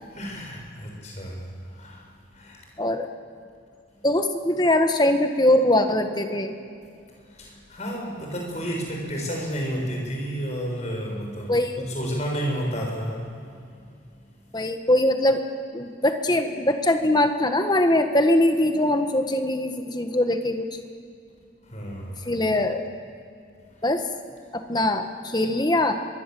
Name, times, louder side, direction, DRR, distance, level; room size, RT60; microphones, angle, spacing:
voice 1, 0.1-2.6 7.2-13.3 13.7-13.8 21.6-22.3 23.8-23.9, equal, 35° left, -1 dB, 6.4 m, -31 dB
voice 2, 2.8-3.1 4.0-6.5 11.5-11.8 14.5-15.4 15.7-20.8 22.2-22.8 23.8-24.0 24.5-25.9, left 1 dB, 20° left, 6 dB, 1.5 m, -22 dB
27.0 x 23.0 x 7.8 m, 2.4 s
head